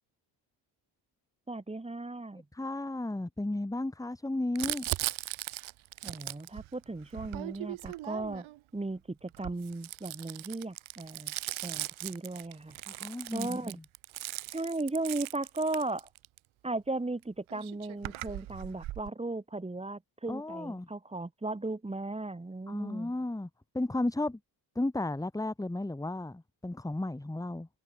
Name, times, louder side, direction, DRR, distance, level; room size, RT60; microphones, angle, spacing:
voice 1, 1.5-2.4 6.0-8.4 8.7-11.3 11.6-12.8 13.3-13.8 14.5-16.1 16.6-23.1, right 2 dB, 15° right, 2.8 m, -36 dB
voice 2, 2.5-4.9 12.9-13.8 20.3-20.9 22.7-23.5 23.7-24.4 24.8-27.7, left 2 dB, 5° left, 1.8 m, -34 dB
Crumpling crinkling, 4.6-8.6 9.3-16.4 17.2-17.3 17.5-19.1, right 16 dB, 85° right, 1.2 m, -39 dB
cardioid pair, 115°, 47 cm